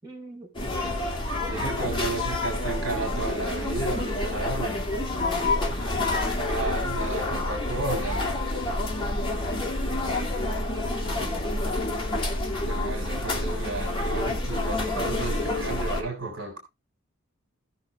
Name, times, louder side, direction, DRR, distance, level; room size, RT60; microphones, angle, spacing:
voice 1, 0.0-2.2 5.1-6.1 9.3-12.3, right 2 dB, 15° right, 5.3 m, -46 dB
sound 1, 0.5-16.0, left 2 dB, 20° left, 2.5 m, -28 dB
voice 2, 1.5-4.8 6.5-8.3 12.7-16.6, right 2 dB, 55° right, 3.6 m, -33 dB
17.5 x 6.5 x 3.3 m
head